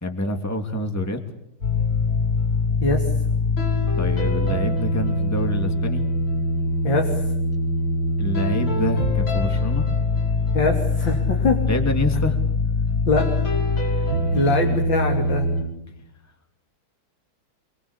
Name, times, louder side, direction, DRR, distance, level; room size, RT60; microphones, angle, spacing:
voice 1, 0.0-1.2 4.0-6.0 8.2-9.9 11.7-12.4 14.3-14.6, left 1 dB, 5° left, 4 dB, 2.7 m, -27 dB
sound 1, 1.6-15.6, left 2 dB, 90° left, 6.7 m, -23 dB
voice 2, 6.8-7.2 10.5-11.6 13.1-13.4 13.9-14.0 14.3-15.5, left 3 dB, 60° left, 2 dB, 3.7 m, -23 dB
27.0 x 24.0 x 8.5 m, 0.78 s
omnidirectional pair, 2.3 m